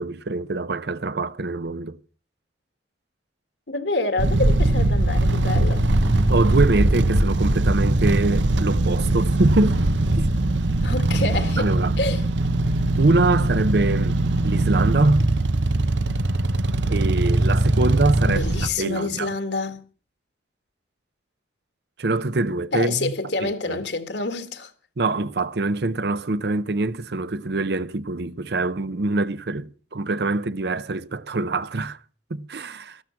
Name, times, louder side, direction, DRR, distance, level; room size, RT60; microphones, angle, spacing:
voice 1, 0.0-2.0 6.3-9.8 10.1-10.3 11.6-12.0 13.0-15.3 16.9-18.4 18.8-19.3 22.0-23.1 23.4-23.8 25.0-32.0 32.3-33.0, right 2 dB, 60° right, 0.7 m, -24 dB
voice 2, 3.7-5.8 10.8-12.2 18.3-19.8 22.7-24.7, left 3 dB, 65° left, 1.8 m, -27 dB
sound 1, 4.2-18.7, right 2 dB, 80° right, 1.0 m, -21 dB
14.0 x 12.5 x 5.8 m
head